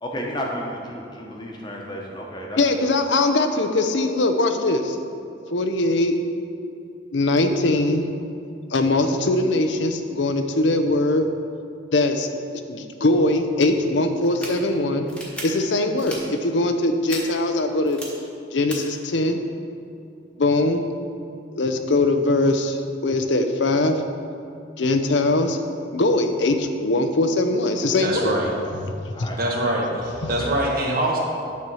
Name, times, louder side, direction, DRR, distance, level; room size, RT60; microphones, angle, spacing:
voice 1, 0.0-2.8 29.1-29.4 30.4-30.5, equal, 25° left, -1 dB, 1.1 m, -32 dB
voice 2, 2.6-5.0 5.5-6.1 7.1-8.0 8.7-11.3 11.9-12.3 12.7-15.1 15.4-18.0 18.5-19.4 20.4-20.8 21.6-22.8 23.0-24.0 24.8-25.6 25.9-28.3 29.2-29.3, left 2 dB, 70° left, 7 dB, 0.7 m, -21 dB
sound 1, 14.2-14.5 15.1-15.4 16.0-16.2 17.1-17.2 17.8-18.0 18.7-18.8, equal, 5° left, 1.3 m, -34 dB
voice 3, 28.0-28.5 29.4-31.2, right 1 dB, 50° right, -2 dB, 1.4 m, -24 dB
9.4 x 4.4 x 6.3 m, 2.6 s
head